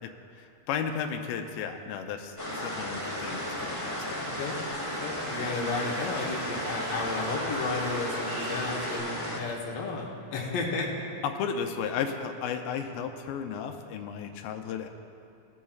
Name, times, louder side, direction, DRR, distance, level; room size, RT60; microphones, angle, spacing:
voice 1, 0.0-4.3 11.2-14.9, left 7 dB, 90° left, 6 dB, 2.4 m, -34 dB
sound 1, 2.4-9.4, left 1 dB, 35° left, 0.5 m, -34 dB
sound 2, 2.9-9.0, right 2 dB, 55° right, 2.0 m, -41 dB
voice 2, 5.0-10.9, left 3 dB, 60° left, -2 dB, 1.7 m, -33 dB
20.5 x 7.3 x 2.3 m, 2.5 s
omnidirectional pair, 4.1 m